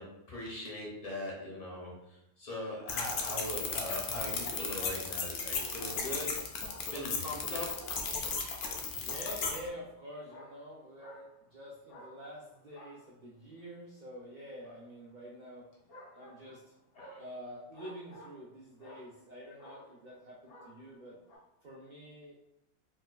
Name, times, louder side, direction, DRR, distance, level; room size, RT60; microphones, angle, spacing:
voice 1, 0.0-6.4 6.9-8.0 17.0-17.2, left 1 dB, 40° left, -3 dB, 0.5 m, -40 dB
sound 1, 2.9-9.6, left 5 dB, 65° left, 0.8 m, -35 dB
sound 2, 3.1-3.6 4.2-6.3 6.6-8.2 8.6-9.1 9.4-11.5 11.9-13.8 14.6-14.8 15.9-18.5 18.8-19.3 19.6-20.1 20.5-21.0 21.3-21.4, equal, 90° left, 1.4 m, -54 dB
voice 2, 9.0-15.7 16.1-16.6 17.2-21.2 21.6-22.4, equal, 75° right, -5 dB, 0.4 m, -47 dB
4.1 x 2.2 x 2.3 m, 0.81 s
omnidirectional pair, 1.5 m